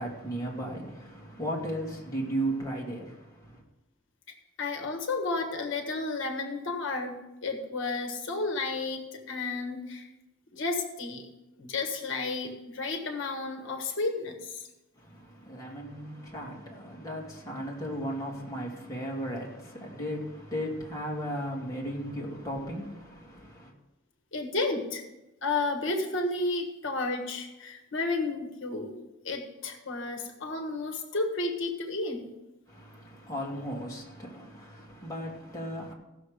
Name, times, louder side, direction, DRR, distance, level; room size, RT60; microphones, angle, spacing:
voice 1, 0.0-3.6 14.9-23.7 32.7-35.9, equal, 15° left, 2.3 m, -36 dB
voice 2, 4.6-10.1 10.5-11.3 11.6-14.6 24.3-25.0 25.4-32.3, left 3 dB, 60° left, 1.4 m, -32 dB
16.0 x 6.5 x 5.1 m
head